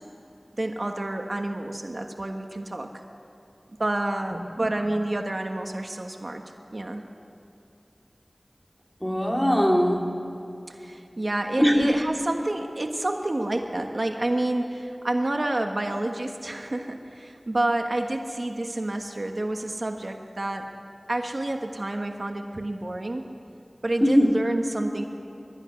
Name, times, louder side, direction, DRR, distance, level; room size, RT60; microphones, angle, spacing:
voice 1, 0.6-3.0 3.8-6.4 6.7-7.0 10.7-20.7 21.1-23.3 23.8-25.1, right 1 dB, 60° right, 4 dB, 1.4 m, -29 dB
voice 2, 4.6-4.9 9.0-10.1 11.6-11.9 24.0-24.3, equal, 5° left, 0 dB, 3.3 m, -21 dB
22.5 x 13.5 x 9.7 m, 2.6 s
wide cardioid pair, 40°, 0 cm